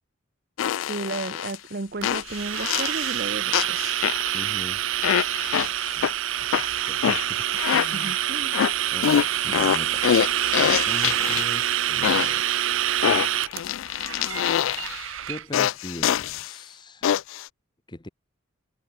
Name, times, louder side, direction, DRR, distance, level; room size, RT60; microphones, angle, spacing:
sound 1, 0.6-1.6 2.0-3.2 3.5-4.5 5.0-6.1 6.5-8.2 8.5-11.6 12.0-12.5 13.0-15.0 15.5-16.5 17.0-17.5, left 9 dB, 70° left, 0.3 m, -25 dB
voice 1, 0.8-3.8 7.9-8.5, right 2 dB, 45° right, 0.9 m, -33 dB
sound 2, 2.0-15.4, right 12 dB, 65° right, 0.5 m, -26 dB
voice 2, 4.3-4.9 5.9-6.1 6.4-7.4 7.7-8.1 8.9-10.3 10.6-12.4 13.6-13.7 15.3-17.1 17.9-18.1, left 1 dB, 20° left, 0.8 m, -40 dB
head